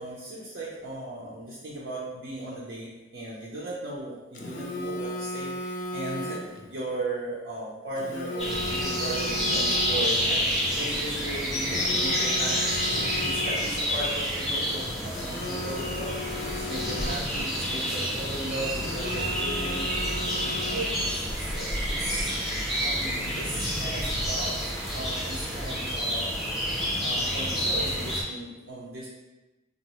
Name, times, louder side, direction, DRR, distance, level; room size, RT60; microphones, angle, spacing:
voice 1, 0.0-12.6 12.9-16.2 16.5-20.1 20.6-22.3 22.8-24.6 24.9-26.3 27.0-29.1, right 1 dB, 85° right, -6 dB, 0.6 m, -37 dB
Telephone, 4.3-6.7 8.0-10.3 11.5-13.9 15.1-17.5 18.7-21.1, left 1 dB, 40° left, 0.4 m, -36 dB
sound 1, 8.4-28.2, equal, ahead, 0.6 m, -29 dB
3.9 x 2.0 x 3.0 m, 1.1 s
head